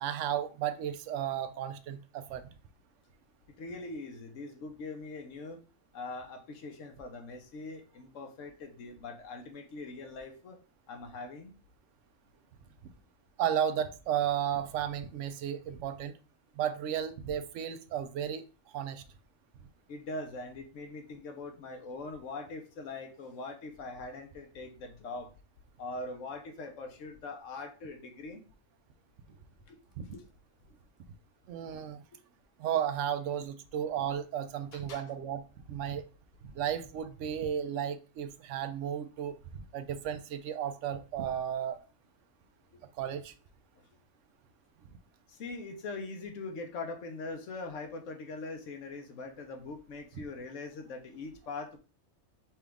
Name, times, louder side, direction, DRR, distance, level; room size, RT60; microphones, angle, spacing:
voice 1, 0.0-2.4 13.4-16.1 16.6-18.4 18.7-19.0 30.0-30.1 31.5-32.0 32.6-35.4 35.7-36.0 36.5-41.8 43.0-43.3, right 9 dB, 75° right, 0.9 m, -33 dB
voice 2, 3.6-5.6 5.9-10.6 10.9-11.5 19.9-25.3 25.8-28.4 29.3-29.4 29.7-29.8 30.1-30.3 34.7-35.0 42.7-42.8 45.3-51.8, left 3 dB, 75° left, 1.1 m, -42 dB
5.9 x 2.4 x 3.4 m
omnidirectional pair, 1.3 m